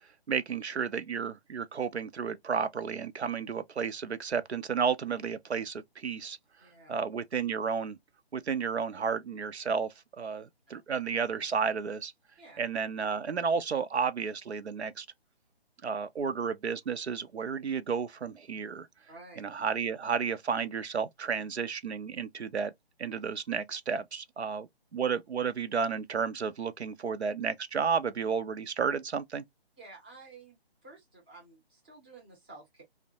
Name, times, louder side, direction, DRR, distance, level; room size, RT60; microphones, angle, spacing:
voice 1, 0.3-6.4 6.9-8.0 8.3-12.1 12.6-15.1 15.8-18.9 19.4-22.7 23.0-29.4, right 6 dB, 90° right, 0.5 m, -32 dB
voice 2, 6.6-7.0 10.7-10.8 12.4-12.6 19.1-19.4 29.8-30.6 30.8-32.8, right 3 dB, 10° right, 0.5 m, -52 dB
2.5 x 2.1 x 2.7 m
figure-of-eight pair, 145°, 32 cm